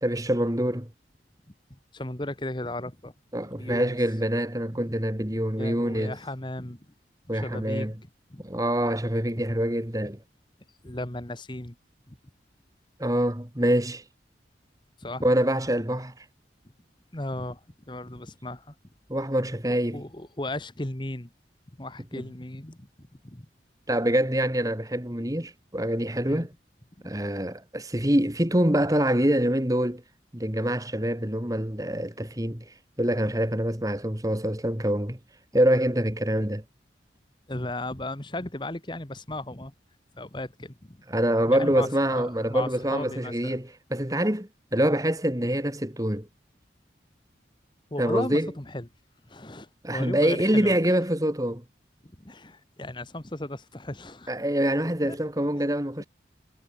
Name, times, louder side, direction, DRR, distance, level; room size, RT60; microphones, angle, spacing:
voice 1, 0.0-0.9 3.3-6.2 7.3-7.9 8.4-10.2 13.0-14.0 15.2-16.1 19.1-20.0 22.1-22.2 23.9-26.5 27.0-30.0 30.3-32.6 33.0-35.2 35.5-36.6 41.1-46.3 48.0-48.5 49.8-51.6 54.3-56.1, right 1 dB, 20° right, 2.2 m, -25 dB
voice 2, 1.9-3.1 3.6-4.0 5.6-6.8 7.3-7.9 8.3-8.4 10.8-11.7 12.1-12.2 15.0-15.2 17.1-18.7 19.9-21.3 21.8-22.9 23.2-23.5 26.3-26.5 27.0-27.1 37.5-39.7 40.2-41.0 41.5-41.9 42.1-43.6 47.9-48.9 49.3-50.7 52.2-54.3 55.0-55.2, left 1 dB, 25° left, 1.5 m, -35 dB
head